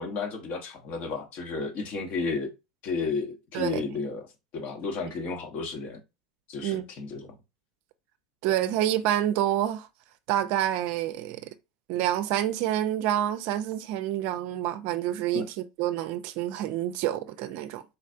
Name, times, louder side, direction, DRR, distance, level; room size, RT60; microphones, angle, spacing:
voice 1, 0.0-2.5 2.8-4.3 4.5-6.0 6.5-7.3 15.3-15.5, left 4 dB, 45° left, 1.2 m, -32 dB
voice 2, 3.5-3.9 6.6-6.8 8.4-9.9 10.3-11.5 11.9-15.4 15.8-17.8, right 12 dB, 55° right, 0.5 m, -27 dB
4.1 x 3.2 x 2.6 m
hypercardioid pair, 90°, 4 cm